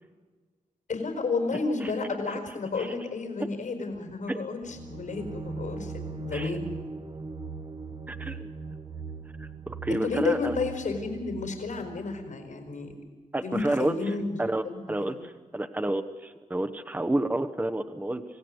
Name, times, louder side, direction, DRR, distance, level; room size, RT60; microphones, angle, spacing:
voice 1, 0.9-6.6 9.9-12.9 13.4-14.4 14.6-15.1, left 4 dB, 85° left, 4 dB, 4.7 m, -31 dB
sound 1, 4.6-12.3, right 4 dB, 35° right, 1.2 m, -40 dB
voice 2, 8.1-8.5 9.4-10.6 13.3-14.6 14.9-18.2, right 1 dB, 10° right, 10 dB, 1.0 m, -30 dB
27.0 x 17.0 x 8.0 m, 1.4 s
wide cardioid pair, 110°, 13 cm